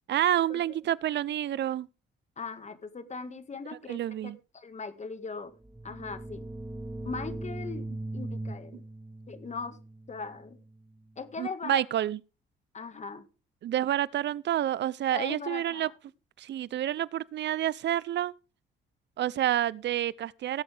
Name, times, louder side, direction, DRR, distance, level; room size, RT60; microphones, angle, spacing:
voice 1, 0.1-1.9 3.9-4.4 11.4-12.2 13.6-15.9 16.4-18.3 19.2-20.6, right 12 dB, 60° right, 0.6 m, -29 dB
voice 2, 2.4-5.5 5.8-6.4 7.0-7.9 8.1-8.8 9.3-9.8 10.1-10.6 11.2-11.8 12.7-13.2 15.1-15.9, left 4 dB, 35° left, 1.8 m, -39 dB
sound 1, 5.6-11.1, right 2 dB, 5° right, 1.0 m, -40 dB
18.0 x 7.8 x 3.4 m
cardioid pair, 90°, 20 cm